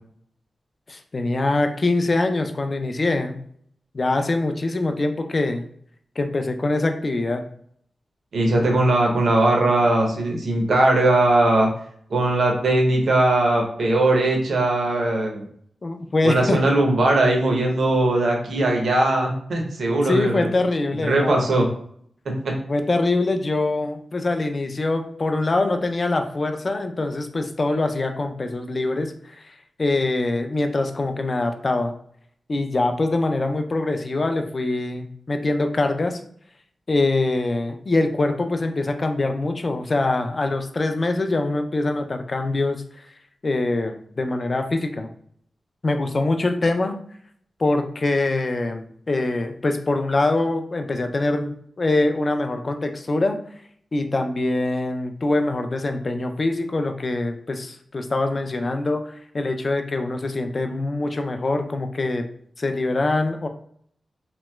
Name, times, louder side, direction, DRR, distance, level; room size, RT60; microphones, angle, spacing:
voice 1, 0.9-3.4 3.9-5.6 6.2-7.4 15.8-16.6 20.0-21.5 22.7-31.9 32.5-36.2 36.9-43.1 43.4-45.1 45.8-47.0 47.6-53.4 53.9-62.2 62.6-63.5, left 2 dB, 35° left, 6 dB, 0.3 m, -24 dB
voice 2, 8.3-11.7 12.1-15.5 16.2-20.5 21.0-21.7, right 2 dB, 65° right, 1 dB, 0.7 m, -19 dB
3.0 x 2.9 x 2.2 m, 0.63 s
wide cardioid pair, 150°, 0 cm